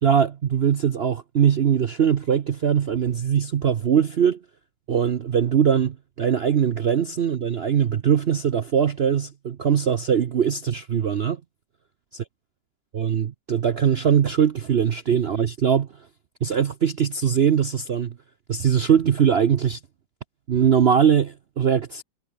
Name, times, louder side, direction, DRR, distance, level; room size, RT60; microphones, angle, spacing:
voice 1, 0.0-4.4 4.9-11.4 12.1-12.2 12.9-16.1 16.4-18.2 18.5-19.8 20.5-22.0, right 8 dB, 70° right, 0.5 m, -21 dB
omnidirectional pair, 2.0 m